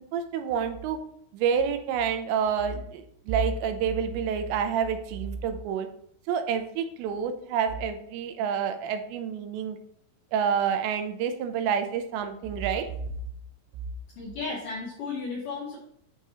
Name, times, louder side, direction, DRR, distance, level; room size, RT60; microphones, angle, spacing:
voice 1, 0.1-1.0 1.3-5.9 6.3-9.8 10.3-12.9, right 7 dB, 80° right, 8 dB, 2.8 m, -28 dB
voice 2, 14.2-15.8, left 4 dB, 70° left, -3 dB, 2.0 m, -34 dB
9.2 x 3.6 x 4.2 m, 0.69 s
omnidirectional pair, 5.2 m